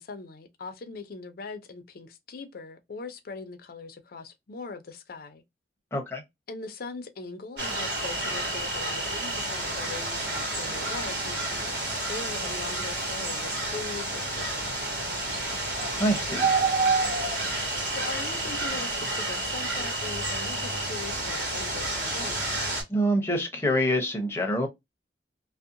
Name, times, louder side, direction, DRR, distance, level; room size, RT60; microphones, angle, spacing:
voice 1, 0.0-5.4 6.5-14.9 17.9-22.6, left 4 dB, 55° left, 0.5 m, -41 dB
voice 2, 5.9-6.2 15.4-15.5 16.0-16.5 22.9-24.7, equal, 15° left, 0.7 m, -26 dB
sound 1, 7.6-22.8, right 2 dB, 70° right, 1.5 m, -29 dB
2.7 x 2.1 x 2.4 m
head